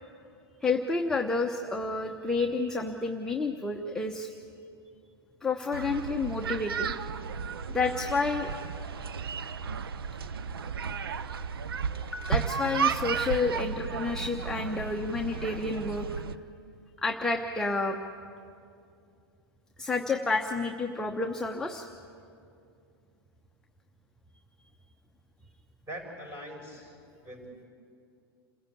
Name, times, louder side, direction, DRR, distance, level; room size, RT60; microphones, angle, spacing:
voice 1, 0.6-4.3 5.4-6.9 7.7-8.5 12.0-16.1 17.0-18.0 19.8-21.9, left 3 dB, 5° left, 2 dB, 0.9 m, -30 dB
sound 1, 5.7-16.4, right 6 dB, 70° right, 0.7 m, -33 dB
voice 2, 25.9-27.0 27.2-27.7, equal, 20° right, 3 dB, 5.8 m, -42 dB
28.0 x 15.5 x 8.6 m, 2.5 s
figure-of-eight pair, 100°, 13 cm